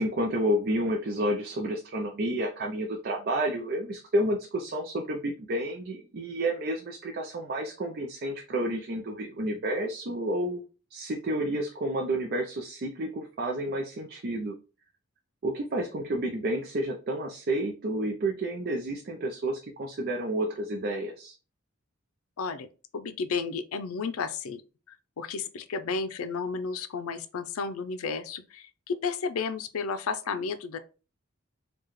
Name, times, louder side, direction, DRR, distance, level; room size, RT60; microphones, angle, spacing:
voice 1, 0.0-10.6 10.9-14.5 15.4-21.3, right 1 dB, 50° right, 0.5 m, -30 dB
voice 2, 22.4-22.7 22.9-24.6 24.9-30.8, left 5 dB, 90° left, 0.5 m, -32 dB
4.7 x 2.3 x 3.0 m
head